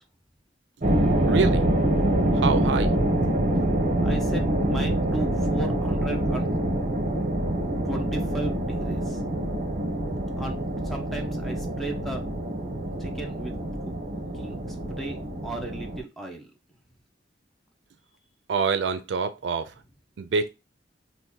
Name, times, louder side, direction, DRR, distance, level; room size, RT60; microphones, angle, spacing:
sound 1, 0.8-16.0, right 1 dB, 45° right, 0.8 m, -25 dB
voice 1, 1.3-1.6 2.4-2.9 18.5-19.6 20.2-20.5, right 5 dB, 75° right, 0.4 m, -25 dB
voice 2, 4.0-6.5 7.8-9.2 10.4-12.2 13.0-13.5 13.8-13.9 14.4-14.6 14.9-16.5, right 2 dB, ahead, 0.6 m, -35 dB
2.8 x 2.5 x 3.6 m
head